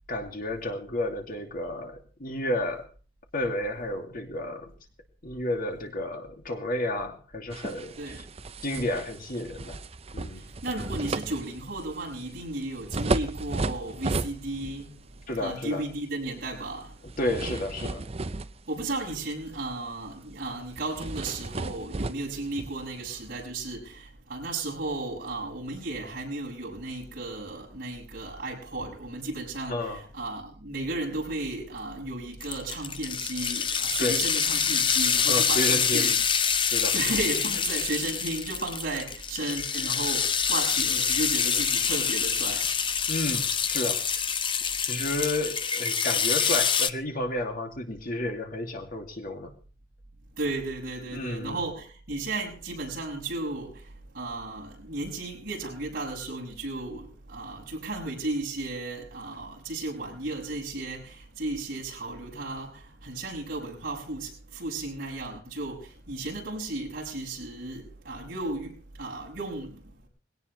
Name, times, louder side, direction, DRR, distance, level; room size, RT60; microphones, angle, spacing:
voice 1, 0.1-2.9 3.3-4.7 5.2-8.0 8.6-9.8 10.1-10.5 15.3-15.8 17.2-18.0 29.7-30.0 34.0-34.2 35.2-36.1 36.7-36.9 43.1-44.0 44.9-49.5 51.1-51.6, left 1 dB, 50° left, 2.5 m, -31 dB
sound 1, 7.5-14.9 15.2-15.5 17.0-19.3 19.6-19.9 20.1-20.2 20.7-23.4, right 3 dB, 35° right, 0.6 m, -34 dB
voice 2, 10.6-15.0 15.4-16.9 18.7-36.2 36.9-42.7 50.4-53.8 54.1-69.8, right 2 dB, 50° right, 6.7 m, -34 dB
sound 2, 32.4-46.9, left 7 dB, 25° left, 0.7 m, -26 dB
20.5 x 17.5 x 3.3 m
head